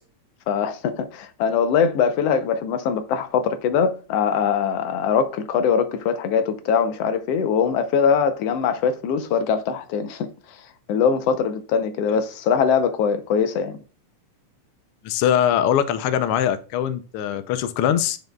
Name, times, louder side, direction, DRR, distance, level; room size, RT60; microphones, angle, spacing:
voice 1, 0.5-10.3 10.9-13.8, left 6 dB, 70° left, 1.6 m, -22 dB
voice 2, 15.0-18.2, left 10 dB, 85° left, 1.2 m, -22 dB
8.2 x 6.7 x 2.3 m
omnidirectional pair, 3.4 m